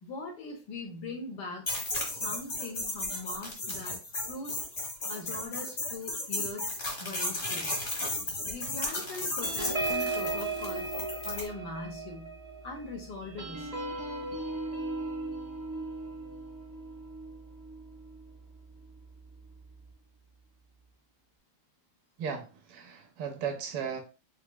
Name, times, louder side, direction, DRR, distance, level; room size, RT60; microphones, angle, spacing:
voice 1, 0.0-1.7 2.1-4.0 4.3-4.6 5.1-7.7 8.5-10.9 11.2-12.4 12.6-13.7, left 3 dB, 60° left, 1 dB, 1.3 m, -41 dB
sound 1, 1.7-11.5, left 2 dB, 35° left, 0.9 m, -34 dB
sound 2, 9.4-18.3 18.8-19.0 19.3-19.6, right 3 dB, 25° right, 0.8 m, -37 dB
voice 2, 22.2-24.0, right 7 dB, 80° right, 5 dB, 1.6 m, -36 dB
4.5 x 2.9 x 2.2 m, 0.32 s
omnidirectional pair, 2.4 m